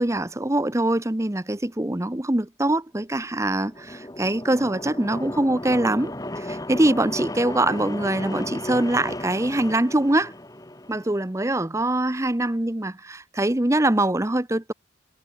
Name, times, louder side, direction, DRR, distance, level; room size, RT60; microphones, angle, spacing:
voice 1, 0.0-10.3 10.9-14.7, right 1 dB, 15° right, 0.8 m, -23 dB
sound 1, 3.3-11.2, left 1 dB, 20° left, 1.8 m, -35 dB
head